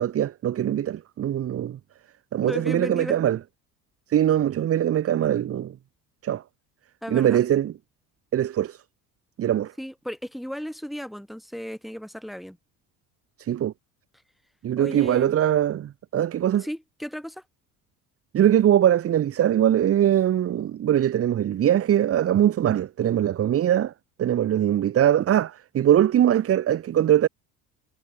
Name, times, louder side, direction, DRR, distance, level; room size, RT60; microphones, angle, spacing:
voice 1, 0.0-1.8 2.3-3.4 4.1-5.7 6.2-6.4 7.1-7.7 8.3-8.8 9.4-9.7 13.4-13.7 14.6-16.7 18.3-23.9 24.2-27.3, right 11 dB, 30° right, 0.8 m, -22 dB
voice 2, 2.4-3.2 7.0-7.4 9.8-12.6 14.8-15.3 16.6-17.4, equal, ahead, 2.8 m, -35 dB
figure-of-eight pair, 60°, 47 cm